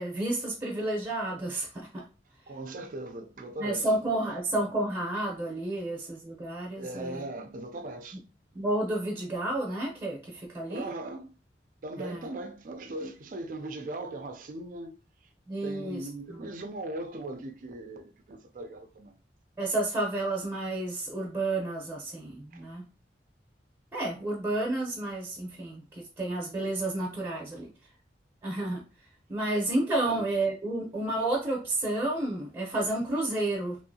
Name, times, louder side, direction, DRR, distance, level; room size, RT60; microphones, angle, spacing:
voice 1, 0.0-2.1 3.6-7.2 8.5-10.9 12.0-12.3 15.5-16.4 19.6-22.8 23.9-27.7 28.4-28.8 29.3-33.8, right 2 dB, 15° right, 0.7 m, -31 dB
voice 2, 2.5-3.9 6.8-8.2 10.7-11.3 11.8-14.9 15.6-19.1 22.5-22.6 30.1-30.3, right 2 dB, 45° right, 0.4 m, -39 dB
3.0 x 2.7 x 2.6 m
head